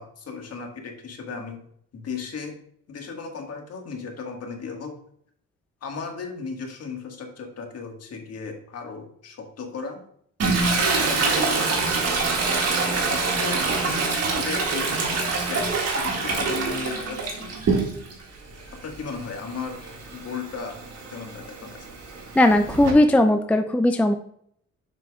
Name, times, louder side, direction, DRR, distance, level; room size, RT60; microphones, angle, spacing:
voice 1, 0.0-1.6 1.9-2.6 2.9-4.9 5.8-10.0 11.0-11.7 13.0-13.6 14.3-14.9 15.5-17.5 18.7-20.8 21.1-21.9, left 5 dB, 55° left, 3 dB, 1.7 m, -35 dB
Toilet flush, 10.4-18.2 18.6-22.9, right 3 dB, 55° right, 2.0 m, -25 dB
voice 2, 22.4-24.1, left 1 dB, 5° left, 7 dB, 0.4 m, -18 dB
7.6 x 5.8 x 2.4 m, 0.66 s
cardioid pair, 90°, 30 cm